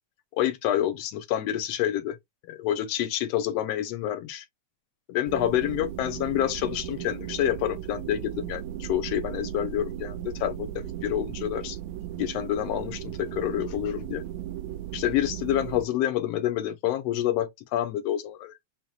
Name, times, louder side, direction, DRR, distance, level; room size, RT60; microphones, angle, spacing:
voice 1, 0.4-2.2 2.5-4.4 5.1-11.8 12.2-14.2 14.9-18.5, left 12 dB, 70° left, 1.7 m, -28 dB
sound 1, 5.3-15.8, right 12 dB, 80° right, 1.9 m, -36 dB
7.0 x 2.9 x 2.4 m
omnidirectional pair, 3.3 m